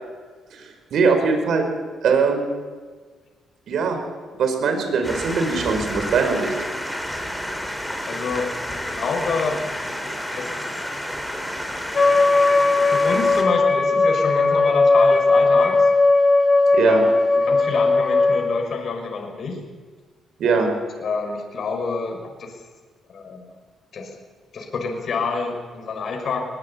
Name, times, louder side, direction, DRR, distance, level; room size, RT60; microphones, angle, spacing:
voice 1, 0.6-1.6 2.0-2.5 3.7-4.0 4.4-6.5 16.7-17.0 20.4-20.7, right 5 dB, 70° right, 6 dB, 5.0 m, -21 dB
sound 1, 5.0-13.4, equal, ahead, 4.8 m, -30 dB
voice 2, 8.1-9.6 10.3-10.5 12.9-15.9 16.8-17.0 17.4-19.6 20.4-20.7 21.0-22.5 23.1-23.5 23.9-24.1 24.5-26.5, left 4 dB, 55° left, 2 dB, 5.9 m, -27 dB
Wind instrument woodwind instrument, 11.9-18.5, left 3 dB, 35° left, 6.2 m, -17 dB
21.5 x 21.0 x 8.7 m, 1.4 s
cardioid pair, 90°, 0 cm